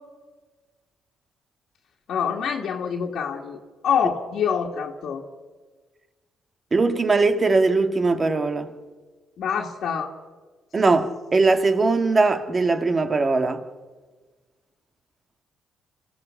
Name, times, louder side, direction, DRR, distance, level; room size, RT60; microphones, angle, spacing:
voice 1, 2.1-3.6 3.8-5.2 9.4-10.1, left 7 dB, 70° left, 2.1 m, -25 dB
voice 2, 6.7-8.7 10.7-13.6, right 3 dB, 30° right, 1.8 m, -20 dB
27.5 x 16.0 x 7.3 m
cardioid pair, 90°, 0 cm